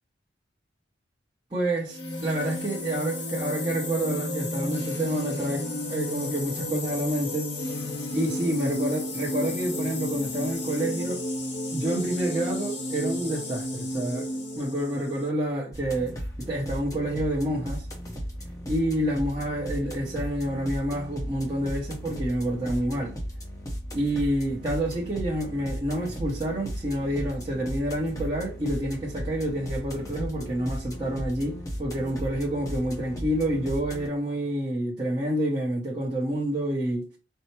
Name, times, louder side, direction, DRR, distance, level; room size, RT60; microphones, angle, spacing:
voice 1, 1.5-7.5 8.1-11.2 11.7-17.9 18.7-23.1 23.9-37.2, right 1 dB, 25° right, 0.8 m, -28 dB
sound 1, 1.9-15.3, left 1 dB, 75° left, 1.3 m, -32 dB
sound 2, 15.7-34.1, equal, 20° left, 0.7 m, -36 dB
4.4 x 2.0 x 4.3 m
head